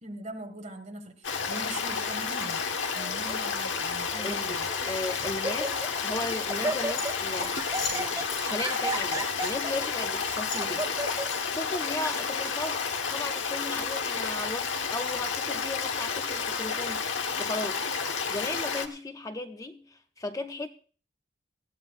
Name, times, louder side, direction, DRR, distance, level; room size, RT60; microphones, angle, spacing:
voice 1, 0.0-2.6 2.9-4.7, right 1 dB, 40° right, 1.8 m, -41 dB
Stream, 1.2-18.9, left 5 dB, 85° left, 1.3 m, -31 dB
Laughter, 2.9-3.3 4.1-4.2 4.7-5.0 5.2-6.0 6.2-11.3, right 2 dB, 20° right, 1.5 m, -34 dB
voice 2, 4.1-4.6 4.9-7.6 7.9-10.9 11.6-17.1 17.4-20.7, left 2 dB, 20° left, 0.5 m, -36 dB
sound 1, 7.0-8.4 8.9-9.8 10.2-11.6, left 5 dB, 60° left, 7.2 m, -39 dB
19.0 x 14.5 x 2.5 m
head